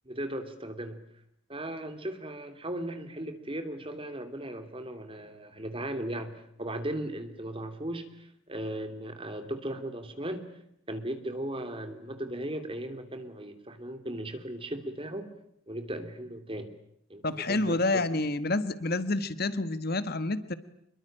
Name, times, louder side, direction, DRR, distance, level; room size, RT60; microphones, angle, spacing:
voice 1, 0.0-1.0 1.5-10.4 10.9-15.3 15.7-16.7 17.1-17.8, right 1 dB, 25° right, 8 dB, 3.0 m, -37 dB
voice 2, 17.2-20.5, left 2 dB, 45° left, 13 dB, 1.4 m, -28 dB
26.0 x 23.0 x 8.8 m, 0.74 s
head